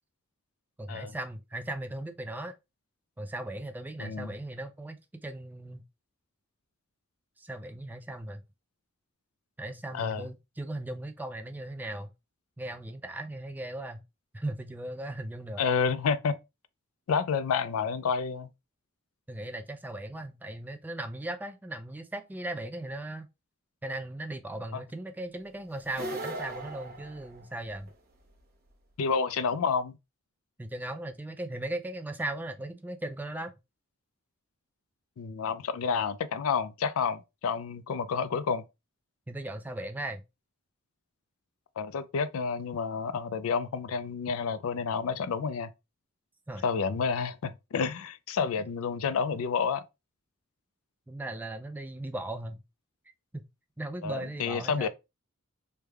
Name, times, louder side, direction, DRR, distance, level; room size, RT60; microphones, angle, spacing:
voice 1, 0.8-2.5 3.2-5.9 7.4-8.4 9.6-12.1 12.6-14.0 14.3-15.6 19.3-23.3 23.8-27.9 30.6-33.5 39.3-40.2 46.5-46.6 51.1-52.6 53.3-53.5 53.8-54.9, right 1 dB, 10° right, 0.3 m, -38 dB
voice 2, 4.0-4.3 9.9-10.2 15.6-16.4 17.1-18.5 24.7-24.8 29.0-29.9 35.2-38.6 41.8-45.7 46.6-49.8 54.0-54.9, left 5 dB, 70° left, 0.4 m, -29 dB
sound 1, 25.8-27.9, right 1 dB, 45° right, 0.8 m, -38 dB
3.3 x 2.2 x 3.3 m
head